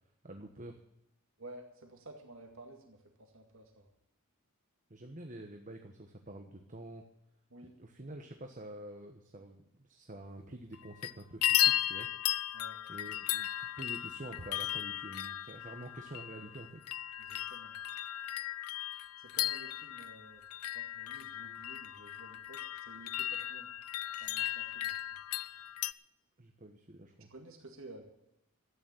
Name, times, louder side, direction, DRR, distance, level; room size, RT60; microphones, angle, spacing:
voice 1, 0.2-0.8 4.9-7.0 7.8-12.1 12.9-16.8 26.4-27.3, right 1 dB, 35° right, 4 dB, 1.2 m, -47 dB
voice 2, 1.4-3.9 7.5-7.8 12.5-12.8 17.2-17.8 19.2-20.4 20.7-23.7 24.2-25.2 27.3-28.0, right 2 dB, 60° right, 3 dB, 2.1 m, -53 dB
sound 1, 10.7-11.1 11.4-25.9, left 13 dB, 80° left, 0.5 m, -36 dB
13.0 x 9.3 x 9.1 m, 0.85 s
head